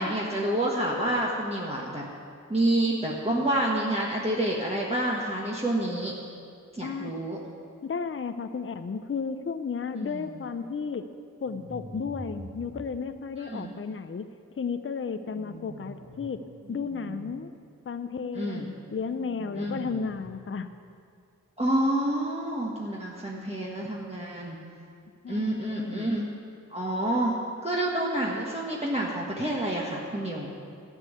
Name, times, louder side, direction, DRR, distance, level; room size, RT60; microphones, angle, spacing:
voice 1, 0.0-2.0 2.5-6.1 6.7-7.4 10.0-10.3 13.4-13.7 18.3-18.7 19.6-19.9 21.6-24.6 25.3-26.3 26.7-27.3 27.6-30.5, right 1 dB, 20° right, -4 dB, 1.4 m, -28 dB
voice 2, 6.8-7.1 7.8-11.0 11.4-14.2 14.6-16.4 16.7-17.5 17.9-20.7 25.2-26.2, left 5 dB, 40° left, 10 dB, 0.5 m, -33 dB
sound 1, 11.4-12.8 15.2-16.3 16.6-17.3 19.1-20.3, right 1 dB, 65° right, 2.2 m, -44 dB
12.5 x 5.5 x 8.2 m, 2.3 s
wide cardioid pair, 45°, 33 cm